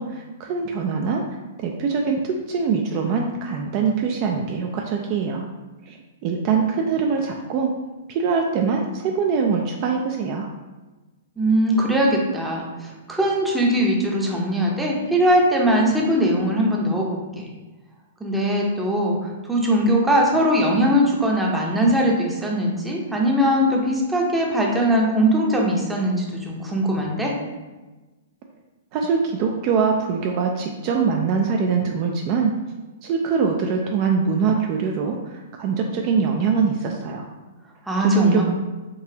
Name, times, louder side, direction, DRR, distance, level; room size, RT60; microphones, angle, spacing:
voice 1, 0.0-5.5 5.9-7.7 8.1-10.5 28.9-32.5 33.0-37.3 38.0-38.4, right 5 dB, 40° right, 2 dB, 0.3 m, -23 dB
voice 2, 11.4-17.5 18.2-27.3 37.9-38.4, equal, 5° right, -2 dB, 0.6 m, -20 dB
3.8 x 2.8 x 2.7 m, 1.2 s
hypercardioid pair, 135°, 0 cm